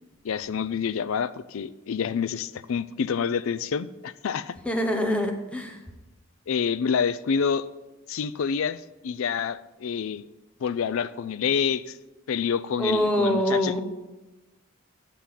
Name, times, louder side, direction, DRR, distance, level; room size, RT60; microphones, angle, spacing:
voice 1, 0.2-4.6 6.5-7.7 8.1-10.2 10.6-12.0 12.3-13.8, left 6 dB, 70° left, 14 dB, 0.4 m, -27 dB
voice 2, 4.6-5.8 12.8-13.8, equal, 5° left, 3 dB, 0.9 m, -24 dB
8.5 x 7.5 x 5.6 m, 1.1 s
head